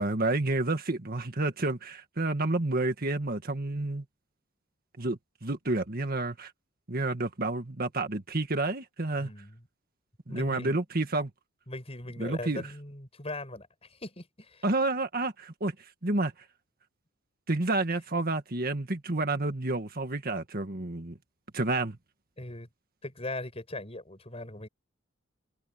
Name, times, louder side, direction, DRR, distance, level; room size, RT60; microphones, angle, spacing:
voice 1, 0.0-4.0 5.0-6.5 6.9-9.3 10.3-11.3 12.2-12.6 14.6-15.7 16.0-16.3 17.5-21.1 21.5-22.0, right 2 dB, 50° right, 1.8 m, -29 dB
voice 2, 9.2-9.6 10.3-10.8 11.7-14.7 22.4-22.7 23.0-24.7, left 2 dB, 30° left, 7.8 m, -40 dB
head